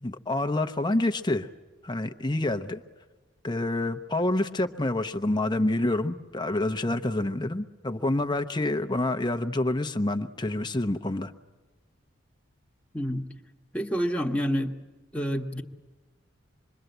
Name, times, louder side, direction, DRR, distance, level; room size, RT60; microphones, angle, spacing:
voice 1, 0.0-1.5 1.8-2.8 3.4-11.3, left 2 dB, 20° left, 9 dB, 0.8 m, -27 dB
voice 2, 12.9-13.3 13.7-14.7 15.1-15.6, equal, 5° left, 0 dB, 1.2 m, -28 dB
26.5 x 22.5 x 8.0 m, 1.3 s
head